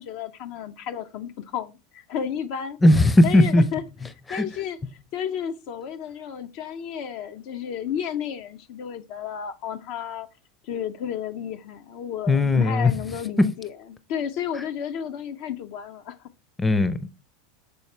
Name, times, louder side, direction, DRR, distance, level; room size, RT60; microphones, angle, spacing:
voice 1, 0.0-2.8 3.2-3.8 4.3-4.8 5.1-10.3 10.6-16.3, left 8 dB, 55° left, 0.5 m, -32 dB
voice 2, 2.8-3.6 4.3-4.4 12.3-12.9 13.4-13.5 16.6-17.1, left 1 dB, 15° left, 0.6 m, -17 dB
6.9 x 4.1 x 3.2 m
hypercardioid pair, 85°, 0 cm